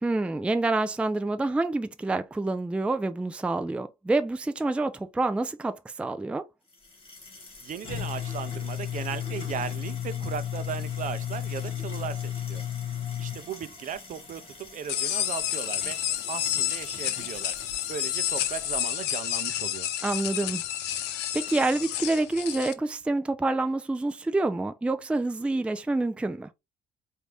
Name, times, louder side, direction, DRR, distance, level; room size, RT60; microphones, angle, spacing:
voice 1, 0.0-6.4 20.0-20.6 21.3-26.5, right 2 dB, 5° right, 0.4 m, -27 dB
sound 1, 6.7-18.8, left 9 dB, 35° left, 2.1 m, -36 dB
voice 2, 7.6-12.6 13.2-16.0 16.3-17.6 17.9-19.9, right 8 dB, 50° right, 0.6 m, -37 dB
sound 2, 14.9-22.7, left 12 dB, 85° left, 0.7 m, -30 dB
4.6 x 2.7 x 3.3 m
cardioid pair, 110°, 17 cm